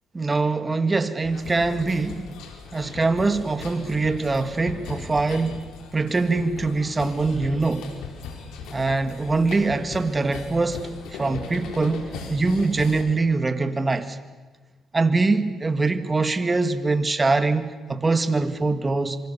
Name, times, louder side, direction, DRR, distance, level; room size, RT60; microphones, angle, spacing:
voice 1, 0.1-2.3 2.7-5.6 5.9-7.9 8.7-10.8 11.1-14.2 14.9-19.2, right 3 dB, 25° right, 10 dB, 2.0 m, -23 dB
sound 1, 1.2-13.0, left 4 dB, 85° left, 4.0 m, -38 dB
26.5 x 25.0 x 7.1 m, 1.3 s
cardioid pair, 90°, 0 cm